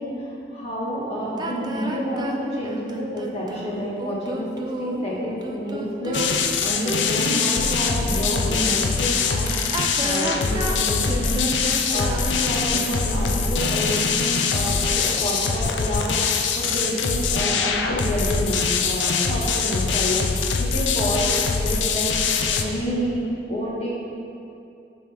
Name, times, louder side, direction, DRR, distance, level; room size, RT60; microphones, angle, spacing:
voice 1, 0.0-6.3 6.6-20.2 20.6-21.3 21.6-22.2 22.5-24.0, equal, 35° left, -6 dB, 1.6 m, -29 dB
sound 1, 1.4-8.9 9.6-13.6, right 1 dB, 25° right, 0.5 m, -32 dB
sound 2, 6.1-22.6, left 5 dB, 85° left, 0.5 m, -23 dB
8.8 x 5.4 x 3.5 m, 2.6 s
head